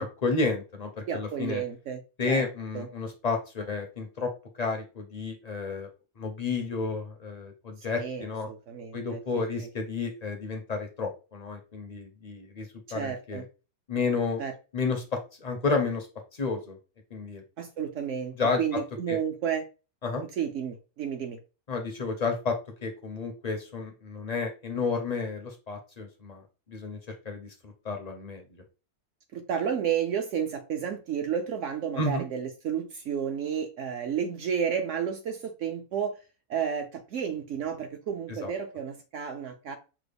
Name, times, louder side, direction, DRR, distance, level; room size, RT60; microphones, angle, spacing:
voice 1, 0.0-1.6 2.2-4.3 4.6-5.9 6.2-8.5 8.9-13.4 13.9-14.4 14.7-16.1 16.3-16.8 17.1-17.4 18.4-18.8 19.1-19.2 20.0-20.2 21.7-22.6 22.8-26.4 26.7-27.5 27.8-28.4 32.0-32.2 38.4-38.5, left 4 dB, 50° left, 3 dB, 0.5 m, -31 dB
voice 2, 1.1-2.0 2.3-2.4 2.7-2.9 7.9-9.2 12.9-13.4 14.4-14.5 17.6-19.6 20.4-21.4 29.3-36.2 36.5-39.8, right 8 dB, 65° right, 5 dB, 0.8 m, -31 dB
5.9 x 2.1 x 3.4 m, 0.32 s
omnidirectional pair, 1.6 m